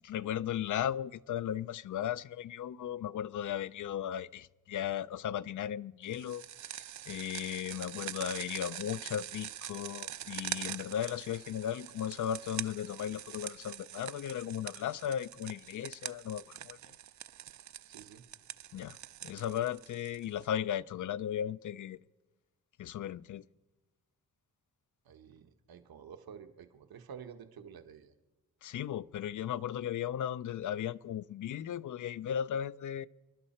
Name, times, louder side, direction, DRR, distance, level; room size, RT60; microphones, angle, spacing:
voice 1, 0.0-6.4 6.7-16.8 18.7-19.0 19.2-22.0 22.8-23.4 28.6-33.1, left 10 dB, 55° left, 0.4 m, -36 dB
sound 1, 6.1-20.4, right 11 dB, 55° right, 0.4 m, -44 dB
voice 2, 17.9-18.3 25.0-28.1, right 7 dB, 80° right, 1.1 m, -50 dB
29.0 x 11.0 x 4.3 m
cardioid pair, 110°, 36 cm